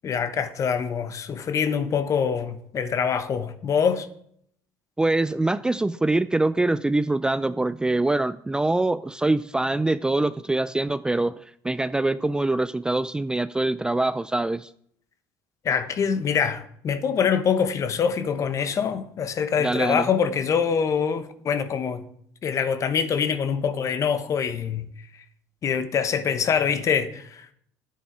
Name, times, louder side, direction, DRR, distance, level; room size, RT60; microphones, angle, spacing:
voice 1, 0.0-4.1 15.6-22.0 22.4-24.9 25.6-27.5, left 7 dB, 40° left, 1.2 m, -24 dB
voice 2, 5.0-14.7 19.6-20.1, right 2 dB, 10° right, 0.4 m, -24 dB
10.0 x 8.9 x 4.8 m
hypercardioid pair, 80°, 8 cm